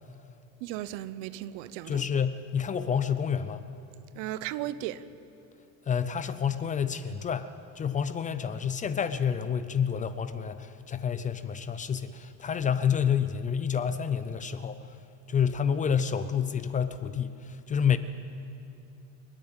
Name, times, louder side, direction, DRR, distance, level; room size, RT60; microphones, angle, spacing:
voice 1, 0.6-2.1 4.1-5.0, right 13 dB, 85° right, 0.9 m, -36 dB
voice 2, 1.9-3.7 5.9-14.8 15.3-18.0, left 7 dB, 25° left, 0.6 m, -29 dB
29.0 x 10.0 x 9.0 m
cardioid pair, 145°, 32 cm